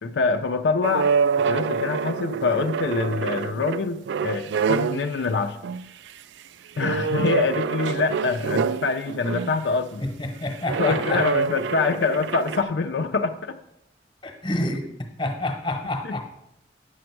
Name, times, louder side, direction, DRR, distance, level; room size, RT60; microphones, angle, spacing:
voice 1, 0.0-1.1 1.4-5.6 6.8-10.0 10.8-13.6 16.0-16.2, left 4 dB, 80° left, 6 dB, 0.5 m, -25 dB
sound 1, 0.8-5.2 5.6-6.1 6.8-9.6 10.6-12.6, right 6 dB, 85° right, 0.3 m, -26 dB
voice 2, 10.0-11.2 14.2-14.9 15.2-16.2, left 1 dB, 25° left, 5 dB, 1.0 m, -28 dB
8.4 x 6.2 x 4.6 m, 0.84 s
head